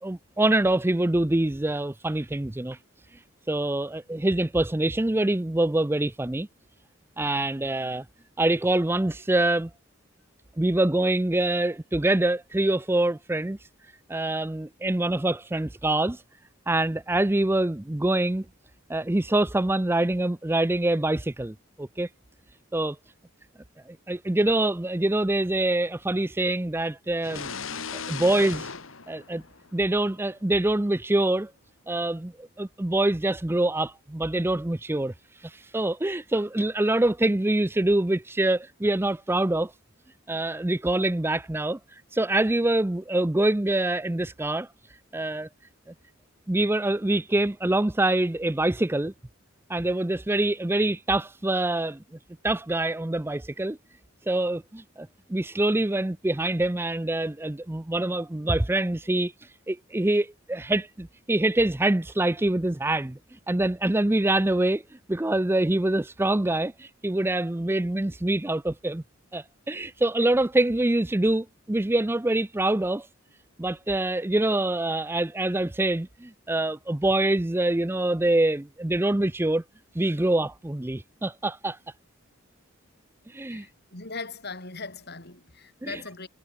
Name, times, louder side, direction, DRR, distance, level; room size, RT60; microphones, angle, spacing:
voice 1, 0.0-2.8 3.5-6.5 7.2-8.0 8.4-9.7 10.6-13.6 14.1-16.2 16.7-18.4 18.9-22.1 22.7-23.0 23.9-27.5 28.1-28.7 29.1-29.4 29.7-31.5 31.9-35.1 35.4-39.7 40.3-41.8 42.1-44.7 45.1-45.5 46.5-49.1 49.7-52.0 52.4-53.8 54.3-59.3 59.7-63.2 63.5-64.8 65.1-69.0 69.3-73.1 73.6-79.6 79.9-81.8 83.3-83.7 85.8-86.0, right 1 dB, 10° right, 0.5 m, -25 dB
sound 1, 27.2-30.0, left 6 dB, 65° left, 2.1 m, -37 dB
voice 2, 83.5-86.3, left 4 dB, 50° left, 5.7 m, -39 dB
head